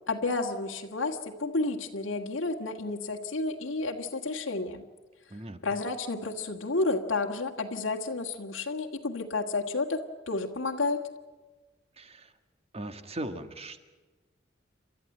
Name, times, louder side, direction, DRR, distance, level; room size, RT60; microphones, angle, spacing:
voice 1, 0.1-4.8 5.6-10.0 10.3-11.0, left 3 dB, 80° left, 1 dB, 1.7 m, -31 dB
voice 2, 12.0-12.3 12.7-13.9, right 1 dB, 30° right, 9 dB, 1.6 m, -39 dB
29.0 x 13.0 x 9.0 m, 1.3 s
head